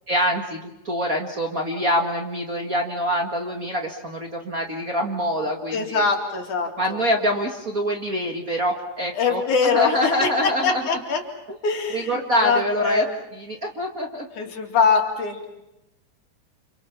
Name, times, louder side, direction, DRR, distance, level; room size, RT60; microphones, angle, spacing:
voice 1, 0.1-6.1 6.8-10.8 11.9-13.1 13.3-14.3, equal, 35° right, 2 dB, 1.8 m, -25 dB
voice 2, 5.7-7.0 9.2-11.2 11.6-13.2 14.4-15.6, left 5 dB, 75° left, 2 dB, 4.1 m, -23 dB
29.5 x 27.5 x 5.9 m, 0.93 s
omnidirectional pair, 3.5 m